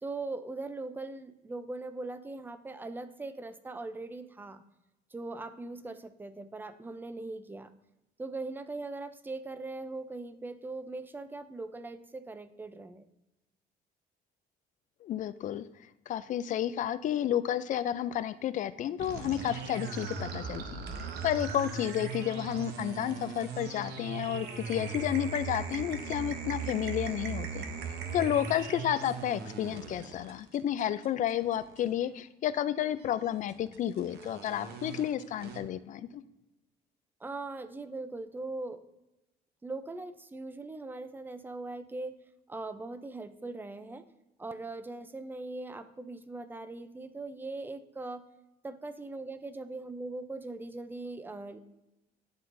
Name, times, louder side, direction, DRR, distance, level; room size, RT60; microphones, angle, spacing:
voice 1, 0.0-4.6 5.1-7.7 8.2-13.1 37.2-38.8 39.6-42.2 42.5-44.1 44.4-48.2 48.6-51.6, right 2 dB, 10° right, 12 dB, 0.4 m, -40 dB
voice 2, 15.0-15.7 16.1-27.7 28.1-36.2, left 11 dB, 50° left, 14 dB, 0.4 m, -31 dB
sound 1, 19.0-32.1 33.0-35.6, right 5 dB, 75° right, 0.8 m, -39 dB
11.0 x 3.7 x 2.6 m, 0.96 s
cardioid pair, 110°, 17 cm